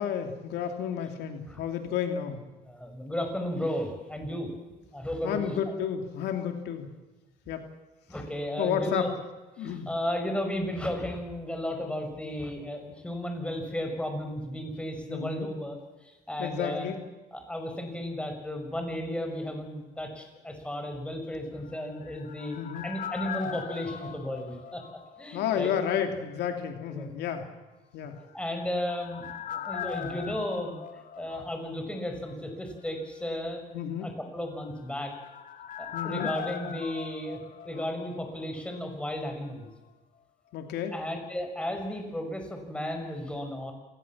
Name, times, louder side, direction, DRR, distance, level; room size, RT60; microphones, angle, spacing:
voice 1, 0.0-2.4 5.2-6.9 7.5-7.7 8.6-9.1 9.6-9.9 15.1-15.5 16.4-17.0 22.5-22.9 25.3-27.5 27.9-28.2 33.7-34.1 35.9-36.3 40.5-40.9, left 8 dB, 80° left, 6 dB, 2.8 m, -31 dB
voice 2, 2.7-4.5 4.9-5.6 8.1-9.1 9.6-16.9 17.3-22.6 22.8-24.8 25.2-25.7 26.9-27.1 28.3-30.8 31.2-33.6 34.0-35.1 35.8-37.4 37.6-39.7 40.9-43.7, left 1 dB, 5° left, 4 dB, 5.9 m, -34 dB
sound 1, 21.7-25.5 25.8-25.9 28.3-32.0 32.3-32.4 34.6-38.5 38.7-38.8, left 8 dB, 50° left, 2.3 m, -40 dB
27.5 x 18.5 x 7.4 m, 1.2 s
cardioid pair, 110°, 17 cm